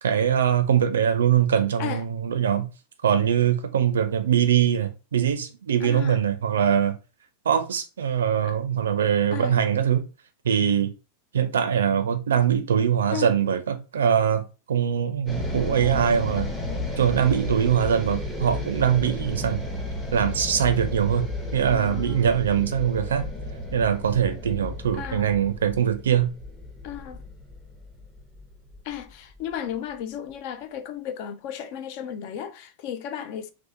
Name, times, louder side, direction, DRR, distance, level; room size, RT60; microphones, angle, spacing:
voice 1, 0.0-2.7 3.0-7.0 7.5-10.0 10.4-10.9 11.3-16.5 17.0-19.6 20.1-21.3 21.5-23.3 23.7-26.3, right 8 dB, 65° right, 0.4 m, -22 dB
voice 2, 5.8-6.2 8.4-8.5 9.3-9.6 13.1-13.3 21.7-22.3 25.0-25.3 26.8-27.2 28.8-33.5, left 9 dB, 45° left, 0.3 m, -34 dB
sound 1, 15.3-29.5, left 2 dB, 10° left, 0.7 m, -33 dB
2.8 x 2.1 x 2.5 m
figure-of-eight pair, 90°, 0 cm